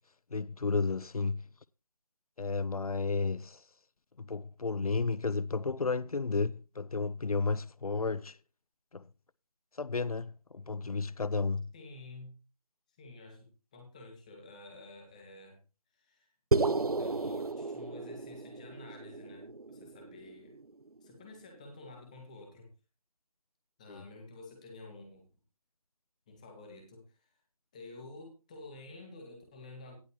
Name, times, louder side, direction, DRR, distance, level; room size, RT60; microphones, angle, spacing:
voice 1, 0.3-1.4 2.4-3.6 4.2-8.4 8.9-9.0 9.8-11.7 23.9-24.0, left 4 dB, 80° left, 0.5 m, -32 dB
voice 2, 11.7-12.3 13.0-15.6 15.9-16.3 17.0-20.6 21.0-22.7 23.8-25.3 26.3-27.3 27.7-30.0, left 2 dB, 10° left, 2.1 m, -50 dB
sound 1, 16.5-20.9, right 3 dB, 90° right, 0.8 m, -33 dB
18.0 x 6.5 x 3.1 m
figure-of-eight pair, 170°, 19 cm